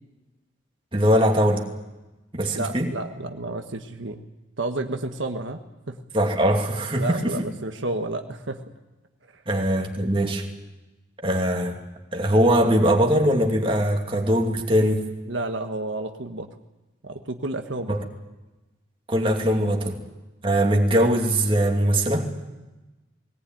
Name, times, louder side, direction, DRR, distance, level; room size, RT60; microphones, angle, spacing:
voice 1, 0.9-1.6 2.3-2.9 6.1-7.2 9.5-10.4 11.2-11.8 12.1-15.0 17.9-18.0 19.1-20.0 20.4-22.3, equal, 30° right, 2 dB, 2.6 m, -21 dB
voice 2, 2.5-4.2 4.6-5.6 5.9-6.0 6.9-8.6 9.3-9.4 15.3-16.5 17.0-18.0, right 2 dB, 80° right, 5 dB, 1.4 m, -31 dB
20.5 x 18.5 x 9.2 m, 1.1 s
head